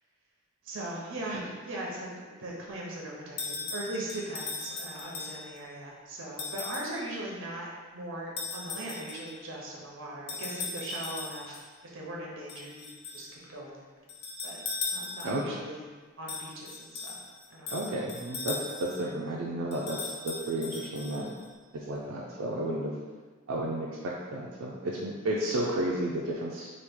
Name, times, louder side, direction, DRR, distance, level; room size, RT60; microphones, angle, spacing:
voice 1, 0.6-11.6 11.9-13.9 14.4-14.6 14.9-15.8 16.2-17.2 17.5-17.8, right 1 dB, 65° right, -3 dB, 0.8 m, -39 dB
sound 1, 3.4-5.6 6.4-7.0 8.4-9.4 10.3-11.7 12.5-13.3 14.1-15.5 16.3-19.1 19.7-21.5, left 4 dB, 50° left, 0.5 m, -38 dB
voice 2, 15.2-15.6 17.7-21.3 21.7-22.9 23.5-26.7, right 1 dB, 90° right, -4 dB, 0.4 m, -32 dB
3.0 x 2.3 x 3.5 m, 1.5 s
head